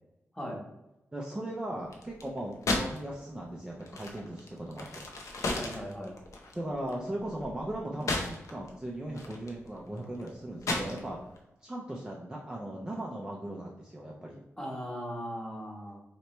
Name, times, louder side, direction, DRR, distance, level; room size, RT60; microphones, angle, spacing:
voice 1, 1.1-5.1 6.5-11.3 11.6-14.4, right 1 dB, 15° right, -3 dB, 0.5 m, -38 dB
sound 1, 1.9-3.1 3.3-8.7 9.1-11.4, left 2 dB, 90° left, 0.7 m, -35 dB
voice 2, 5.5-6.1 14.6-16.0, equal, 10° left, -1 dB, 0.9 m, -38 dB
3.3 x 2.9 x 4.2 m, 0.93 s
wide cardioid pair, 160°, 5 cm